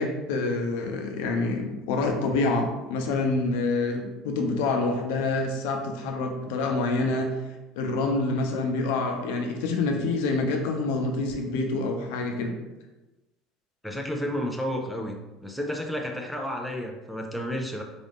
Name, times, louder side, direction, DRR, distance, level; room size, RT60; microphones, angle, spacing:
voice 1, 0.0-7.3 7.8-12.5, left 3 dB, 85° left, 3 dB, 0.6 m, -27 dB
voice 2, 13.8-17.8, equal, ahead, 1 dB, 0.3 m, -31 dB
3.9 x 2.5 x 3.4 m, 1.1 s
cardioid pair, 175°, 0 cm